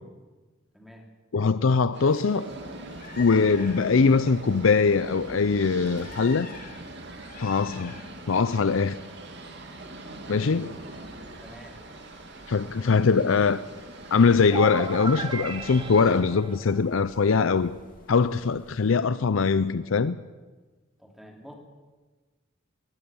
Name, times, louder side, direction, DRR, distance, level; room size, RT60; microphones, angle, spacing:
voice 1, 0.7-1.1 11.4-11.8 21.0-21.5, equal, ahead, 2.9 m, -47 dB
voice 2, 1.3-2.5 3.2-6.5 7.4-7.9 8.3-9.0 10.3-10.7 12.5-13.6 14.1-17.7 18.1-20.2, left 4 dB, 70° left, 0.5 m, -22 dB
sound 1, 1.9-16.2, right 2 dB, 55° right, 2.4 m, -42 dB
sound 2, 2.0-19.0, left 3 dB, 40° left, 2.7 m, -49 dB
sound 3, 14.5-17.3, right 3 dB, 25° right, 1.3 m, -35 dB
22.0 x 17.0 x 7.1 m
head